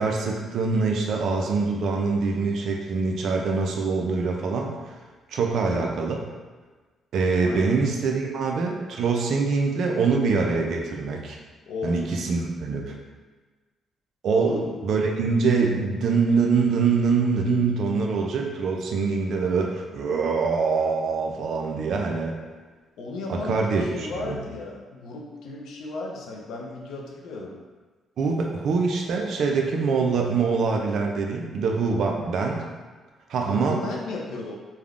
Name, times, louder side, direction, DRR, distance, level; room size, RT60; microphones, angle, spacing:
voice 1, 0.0-4.7 5.3-6.2 7.1-11.4 11.8-13.0 14.2-22.4 23.3-24.4 28.2-32.6 33.3-33.8, right 4 dB, 70° right, 1 dB, 0.4 m, -24 dB
voice 2, 5.5-5.9 7.4-7.8 11.7-11.9 14.3-14.7 23.0-27.6 33.4-34.6, left 3 dB, 85° left, -1 dB, 0.5 m, -35 dB
3.3 x 2.1 x 2.4 m, 1.3 s
cardioid pair, 90°, 0 cm